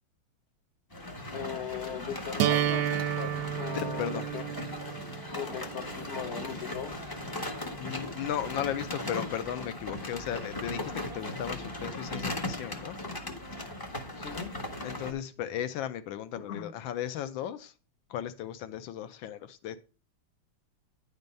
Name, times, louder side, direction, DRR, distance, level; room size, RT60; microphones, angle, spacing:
sound 1, 0.9-15.1, left 1 dB, 25° left, 0.4 m, -38 dB
voice 1, 1.3-4.4 5.4-7.0 14.2-14.5 16.4-16.7, left 8 dB, 50° left, 0.9 m, -39 dB
sound 2, 2.4-8.4, right 11 dB, 75° right, 1.0 m, -33 dB
voice 2, 3.8-4.3 7.5-13.0 14.8-17.7 18.1-19.8, left 10 dB, 80° left, 1.3 m, -36 dB
9.6 x 4.4 x 5.2 m
omnidirectional pair, 2.1 m